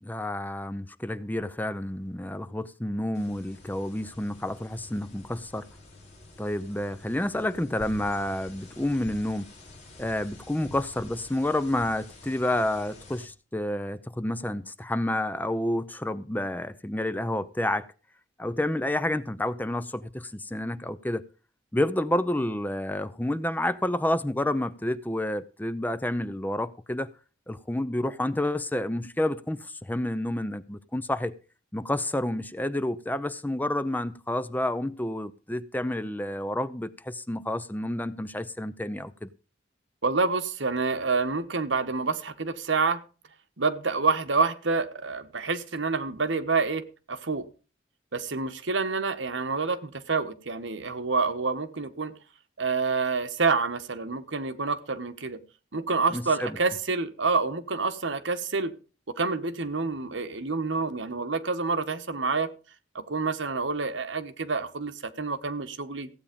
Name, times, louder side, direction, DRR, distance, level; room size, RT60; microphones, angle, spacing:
voice 1, 0.0-5.7 6.4-9.5 10.0-17.9 18.4-21.2 21.7-27.1 27.5-31.3 31.7-39.3 56.1-56.6, left 1 dB, 10° left, 0.5 m, -29 dB
sound 1, 3.1-13.3, left 2 dB, 35° left, 5.7 m, -48 dB
voice 2, 40.0-43.0 43.6-46.8 47.1-47.5 48.1-52.1 52.6-55.4 55.7-58.7 59.2-62.5 62.9-66.1, right 4 dB, 75° right, 1.3 m, -28 dB
15.5 x 8.7 x 5.2 m
head